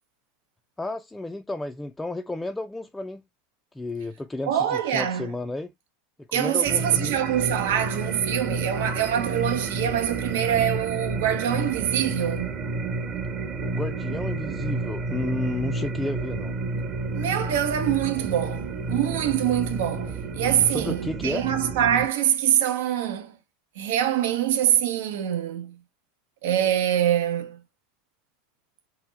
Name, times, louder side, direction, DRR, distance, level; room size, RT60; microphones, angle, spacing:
voice 1, 0.8-3.2 3.7-5.7 6.2-7.1 13.6-16.6 20.7-21.5, left 2 dB, 10° left, 0.3 m, -32 dB
voice 2, 4.5-5.3 6.3-12.6 17.1-23.4 23.8-25.8 26.4-27.6, right 10 dB, 80° right, 0.8 m, -24 dB
sound 1, 6.6-22.1, right 3 dB, 45° right, 1.1 m, -30 dB
4.2 x 2.1 x 3.9 m
supercardioid pair, 110°, 0 cm